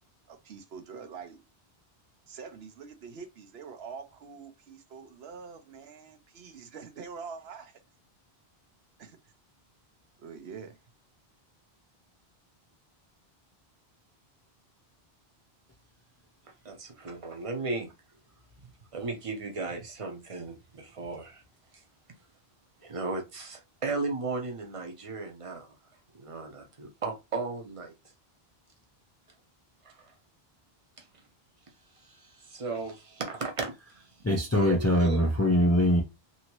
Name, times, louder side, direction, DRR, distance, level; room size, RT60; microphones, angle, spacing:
voice 1, 0.3-1.4 2.3-7.8 9.0-9.3 10.2-10.8, right 5 dB, 75° right, 0.9 m, -45 dB
voice 2, 16.6-17.9 18.9-21.4 22.8-25.7 26.2-27.9 29.8-29.9 32.1-33.7 34.6-35.3, right 3 dB, 35° right, 0.7 m, -35 dB
voice 3, 34.2-36.0, equal, 25° left, 0.4 m, -23 dB
2.8 x 2.7 x 2.9 m
omnidirectional pair, 1.1 m